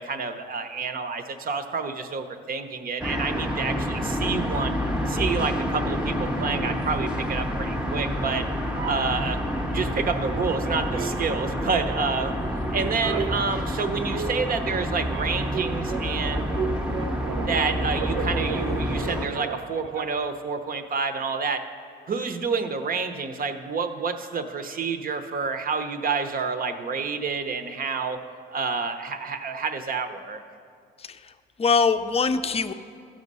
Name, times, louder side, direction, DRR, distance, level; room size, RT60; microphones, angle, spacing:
voice 1, 0.0-4.7 5.1-8.5 8.8-9.4 9.7-12.3 12.7-16.5 17.4-21.7 22.1-28.2 28.5-30.4, right 5 dB, 45° right, 8 dB, 0.8 m, -29 dB
Downtown traffic, 3.0-19.3, equal, 5° right, 0.8 m, -28 dB
sound 1, 8.8-10.6 10.9-20.4, right 6 dB, 90° right, 0.6 m, -35 dB
voice 2, 31.0-31.3 31.6-32.7, left 5 dB, 30° left, 10 dB, 0.5 m, -23 dB
14.5 x 6.3 x 5.4 m, 2.3 s
cardioid pair, 90°, 20 cm